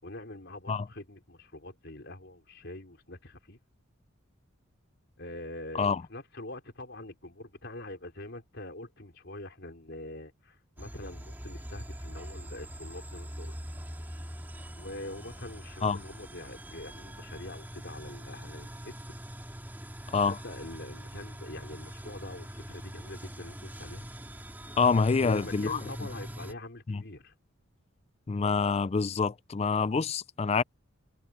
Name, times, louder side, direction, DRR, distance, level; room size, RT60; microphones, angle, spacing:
voice 1, 0.0-3.6 5.2-13.6 14.7-18.9 20.2-24.1 25.2-27.3, left 1 dB, 55° left, 4.1 m, -44 dB
sound 1, 10.8-26.5, equal, 10° right, 2.3 m, -43 dB
voice 2, 20.1-20.4 24.8-25.8 26.9-27.0 28.3-30.6, left 5 dB, 30° left, 0.4 m, -26 dB
head